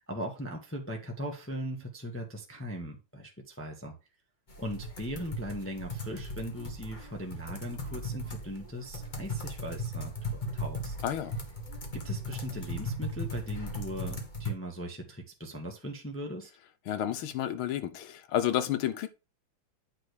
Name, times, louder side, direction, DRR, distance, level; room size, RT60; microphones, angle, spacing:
voice 1, 0.1-3.9 4.6-10.9 11.9-16.5, equal, 10° left, 1.1 m, -39 dB
sound 1, 4.5-14.5, equal, 25° left, 1.2 m, -37 dB
voice 2, 11.0-11.3 16.9-19.1, left 11 dB, 90° left, 1.7 m, -30 dB
8.8 x 3.5 x 6.3 m
omnidirectional pair, 2.2 m